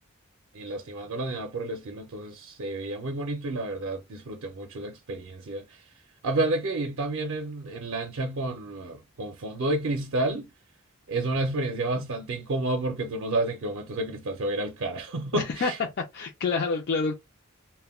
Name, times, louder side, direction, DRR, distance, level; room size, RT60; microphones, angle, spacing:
voice 1, 0.5-5.8 6.2-10.5 11.1-15.8, right 2 dB, 65° right, 0.5 m, -30 dB
voice 2, 15.3-15.7 16.0-17.1, left 4 dB, 50° left, 0.4 m, -27 dB
2.1 x 2.1 x 3.4 m
head